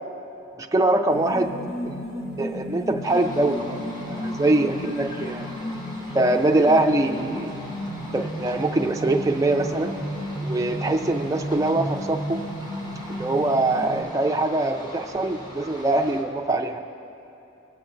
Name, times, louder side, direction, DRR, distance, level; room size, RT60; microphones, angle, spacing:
voice 1, 0.6-1.5 1.8-2.0 2.4-3.8 4.1-5.5 6.1-7.5 8.1-9.9 10.4-12.4 13.1-16.8, right 2 dB, 15° right, 2 dB, 0.3 m, -23 dB
sound 1, 1.1-14.0, left 1 dB, 75° left, 1.2 m, -33 dB
sound 2, 3.0-16.2, equal, 20° left, 1.0 m, -41 dB
17.0 x 7.8 x 2.5 m, 2.8 s
head